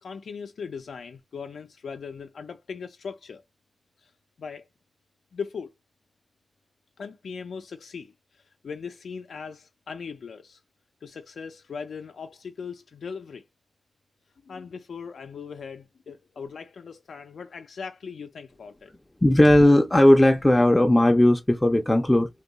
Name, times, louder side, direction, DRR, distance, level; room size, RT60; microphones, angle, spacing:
voice 1, 0.0-3.4 4.0-4.1 4.4-4.7 5.3-5.7 7.0-10.6 11.0-13.5 14.4-18.9, left 5 dB, 85° left, 0.3 m, -39 dB
voice 2, 19.2-22.3, left 1 dB, 15° left, 0.4 m, -17 dB
2.7 x 2.2 x 3.8 m
wide cardioid pair, 140°, 0 cm